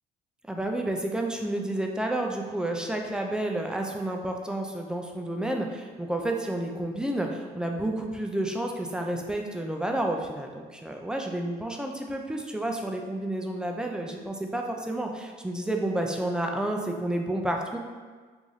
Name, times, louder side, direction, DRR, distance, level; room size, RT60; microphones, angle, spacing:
voice 1, 0.5-17.8, right 1 dB, 5° right, 2 dB, 0.3 m, -30 dB
3.1 x 2.5 x 3.9 m, 1.5 s
cardioid pair, 110°, 17 cm